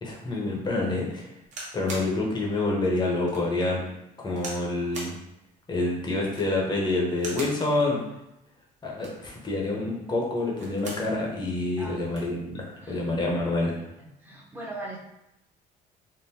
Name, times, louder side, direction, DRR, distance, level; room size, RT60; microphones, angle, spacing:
voice 1, 0.0-1.3 1.7-3.8 4.2-5.1 5.7-8.0 8.8-13.8, left 2 dB, 25° left, -2 dB, 0.9 m, -27 dB
sound 1, 1.4-2.1 2.7-2.8 3.3-3.4 4.4-4.7 4.9-5.2 6.2-6.6 7.1-7.6 8.8-9.3 10.4-11.1 11.5-11.6 11.8-12.3 13.2-13.4, right 2 dB, 45° right, 1.0 m, -39 dB
voice 2, 12.8-13.1 14.2-15.0, right 1 dB, 10° right, -4 dB, 0.9 m, -39 dB
3.7 x 2.1 x 2.8 m, 0.88 s
cardioid pair, 110°, 17 cm